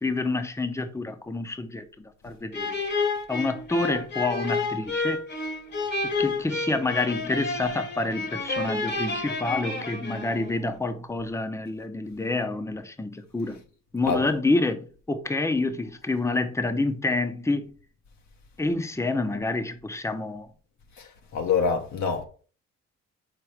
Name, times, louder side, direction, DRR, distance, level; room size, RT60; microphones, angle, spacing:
voice 1, 0.0-2.8 3.3-5.2 6.0-13.6 13.9-17.7 18.6-20.5, left 2 dB, 10° left, 0.7 m, -28 dB
sound 1, 2.5-10.6, left 3 dB, 35° left, 1.1 m, -30 dB
voice 2, 21.0-22.2, left 5 dB, 70° left, 1.1 m, -26 dB
5.1 x 4.0 x 4.7 m
cardioid pair, 90°, 30 cm